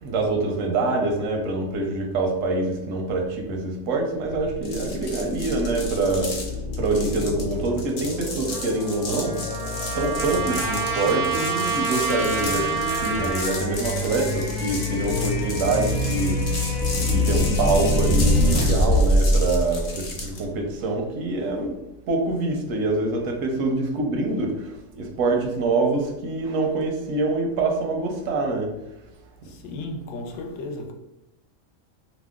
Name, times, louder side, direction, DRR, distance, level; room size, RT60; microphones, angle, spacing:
voice 1, 0.0-6.3 6.8-9.4 9.9-16.4 17.0-21.7 22.1-24.6 25.0-28.7, right 2 dB, 85° right, 1.0 m, -25 dB
sound 1, 4.3-20.4, left 1 dB, 25° left, 0.5 m, -26 dB
sound 2, 4.6-20.4, left 3 dB, 60° left, 0.9 m, -35 dB
Trumpet, 8.5-13.6, right 5 dB, 50° right, 0.4 m, -28 dB
voice 2, 29.4-30.9, left 2 dB, 85° left, 1.0 m, -34 dB
2.9 x 2.0 x 3.4 m
omnidirectional pair, 1.3 m